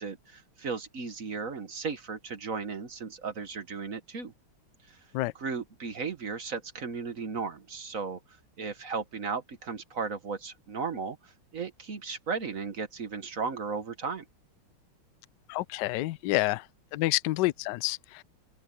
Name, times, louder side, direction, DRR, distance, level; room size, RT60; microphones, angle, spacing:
voice 1, 0.0-4.3 4.9-5.0 5.4-8.2 8.6-14.2, right 5 dB, 45° right, 1.4 m, -35 dB
voice 2, 15.5-16.7 16.9-18.2, left 18 dB, 75° left, 1.0 m, -28 dB
open air
omnidirectional pair, 2.3 m